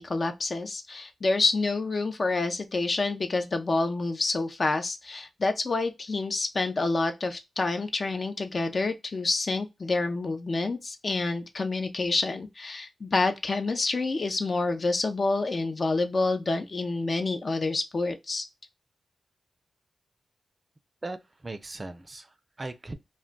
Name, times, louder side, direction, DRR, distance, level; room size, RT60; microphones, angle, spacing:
voice 1, 0.0-18.5, left 3 dB, 50° left, 0.5 m, -28 dB
voice 2, 21.0-22.9, right 2 dB, 35° right, 0.4 m, -39 dB
2.2 x 2.1 x 3.7 m
cardioid pair, 55°, 0 cm